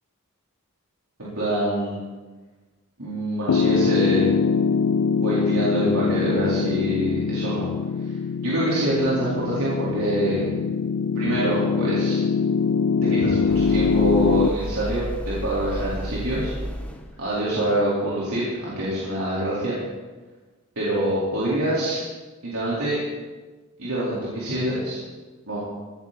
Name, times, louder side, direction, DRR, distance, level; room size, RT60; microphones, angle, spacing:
voice 1, 1.2-2.0 3.0-4.2 5.2-7.6 8.4-10.5 11.1-12.2 13.0-16.5 17.2-19.7 20.8-22.0 22.4-23.0 23.8-25.0 25.5-25.6, right 1 dB, 80° right, -8 dB, 4.3 m, -25 dB
Piano, 3.5-14.5, left 5 dB, 80° left, 0.4 m, -23 dB
sound 1, 13.5-17.2, equal, 5° left, 1.1 m, -32 dB
17.0 x 14.5 x 4.3 m, 1.3 s
head